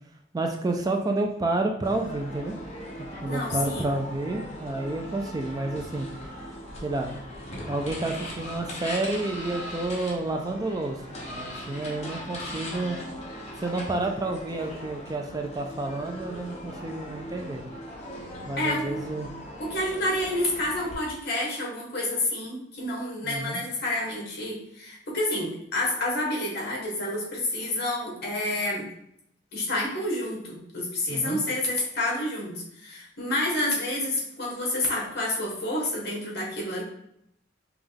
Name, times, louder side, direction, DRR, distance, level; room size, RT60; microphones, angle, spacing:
voice 1, 0.3-2.5 3.2-6.1 6.8-7.2 7.7-13.0 13.6-17.6 18.5-19.3 23.2-23.6 31.1-31.4, right 2 dB, 20° right, 3 dB, 0.3 m, -30 dB
sound 1, 1.8-20.9, equal, 35° left, 1.0 m, -39 dB
voice 2, 3.2-3.9 18.6-19.0 19.6-28.9 29.5-36.8, left 1 dB, 55° left, -2 dB, 1.3 m, -29 dB
5.3 x 2.3 x 3.4 m, 0.74 s
head